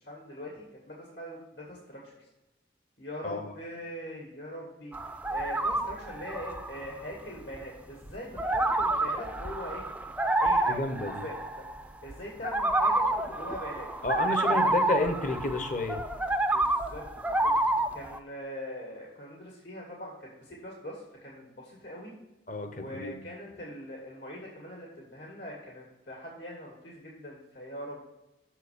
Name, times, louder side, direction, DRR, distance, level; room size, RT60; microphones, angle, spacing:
voice 1, 0.1-2.0 3.0-4.9 5.3-9.8 10.4-10.8 11.1-11.4 12.0-13.0 13.3-13.9 14.4-15.0 16.5-17.5 17.9-22.1 22.7-28.0, left 1 dB, 80° left, -4 dB, 2.2 m, -42 dB
voice 2, 3.2-3.5 10.7-11.2 14.0-16.0 22.5-23.3, left 2 dB, 45° left, 7 dB, 0.8 m, -31 dB
sound 1, 4.9-6.9 7.3-7.6 8.1-12.1 12.4-18.2, right 2 dB, 10° right, 0.3 m, -28 dB
6.8 x 4.6 x 6.8 m, 0.95 s
head